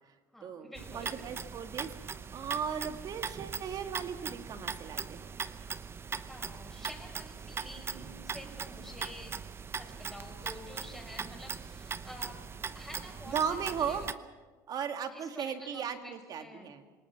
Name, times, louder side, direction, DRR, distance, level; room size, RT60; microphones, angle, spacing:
voice 1, 0.3-1.3 6.3-9.4 9.7-12.4 12.7-14.1 15.1-16.7, left 1 dB, ahead, 2 dB, 5.7 m, -49 dB
sound 1, 0.8-14.1, right 6 dB, 25° right, 0.9 m, -40 dB
voice 2, 0.9-5.3 13.3-14.0 14.7-16.8, right 7 dB, 45° right, 7 dB, 2.2 m, -36 dB
27.5 x 19.0 x 6.0 m, 1.3 s
supercardioid pair, 105°, 9 cm